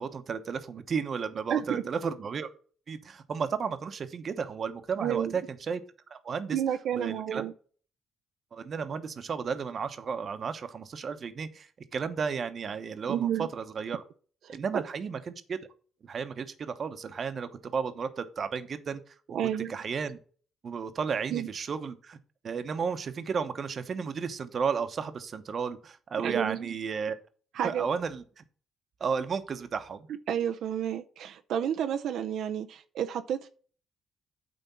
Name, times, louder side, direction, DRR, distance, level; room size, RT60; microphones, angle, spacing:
voice 1, 0.0-2.5 2.9-5.8 6.1-6.6 6.9-7.4 8.5-14.0 14.5-15.6 16.0-19.1 19.7-20.2 20.6-22.2 22.4-27.2 27.6-28.4 29.0-30.1, right 6 dB, 50° right, 1.0 m, -33 dB
voice 2, 1.5-1.8 5.0-5.4 6.5-7.5 13.1-13.5 14.5-14.8 19.3-19.8 21.3-21.5 26.2-26.8 27.5-27.9 30.3-33.5, right 9 dB, 75° right, 0.6 m, -30 dB
9.2 x 3.6 x 6.9 m
cardioid pair, 90°, 0 cm